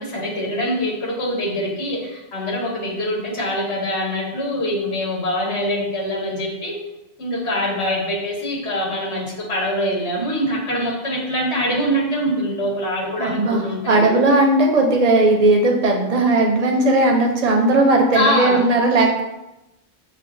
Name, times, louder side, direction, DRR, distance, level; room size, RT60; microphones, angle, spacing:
voice 1, 0.0-6.8 7.2-14.2 18.1-18.6, equal, 80° left, -3 dB, 1.4 m, -24 dB
voice 2, 13.2-19.2, right 2 dB, 45° right, 1 dB, 0.6 m, -17 dB
6.1 x 2.2 x 2.5 m, 0.94 s
omnidirectional pair, 1.1 m